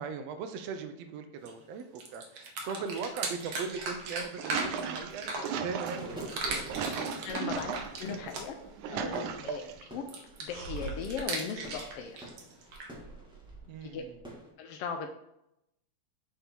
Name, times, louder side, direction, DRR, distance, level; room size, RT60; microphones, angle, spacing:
voice 1, 0.0-6.8 7.2-7.3 9.3-9.5 13.7-14.2, right 5 dB, 75° right, 8 dB, 1.7 m, -39 dB
sound 1, 1.4-1.5 1.8-5.9 6.2-8.7 10.1-12.9, right 3 dB, 55° right, 1.6 m, -37 dB
sound 2, 2.6-2.7 3.0-14.5, right 1 dB, 5° right, 0.9 m, -49 dB
sound 3, 4.1-8.2 8.6-9.9 10.5-11.2, right 6 dB, 90° right, 2.1 m, -37 dB
voice 2, 7.2-7.7 8.0-8.6 8.9-10.0 10.4-12.2 13.8-14.0 14.6-15.1, left 6 dB, 80° left, 4 dB, 1.4 m, -38 dB
6.8 x 5.1 x 4.4 m, 0.82 s
omnidirectional pair, 3.3 m